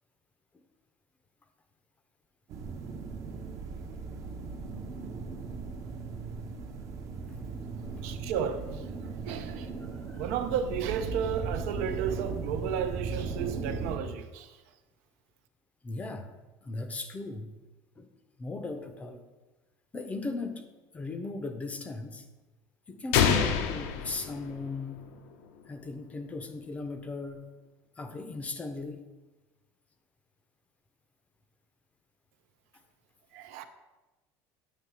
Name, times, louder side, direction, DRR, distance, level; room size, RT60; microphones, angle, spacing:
sound 1, 2.5-14.0, right 4 dB, 45° right, 0.6 m, -37 dB
voice 1, 8.0-8.9 9.3-9.7 10.2-14.6 33.3-33.6, right 8 dB, 85° right, 0.5 m, -33 dB
voice 2, 15.8-16.3 16.6-17.6 18.0-18.1 18.4-19.2 19.9-20.7 20.9-22.3 22.9-25.1 25.7-27.5 28.0-29.0, left 3 dB, 20° left, 0.5 m, -38 dB
sound 2, 23.1-25.0, left 7 dB, 80° left, 0.6 m, -27 dB
8.3 x 3.2 x 4.6 m
cardioid pair, 150°, 8 cm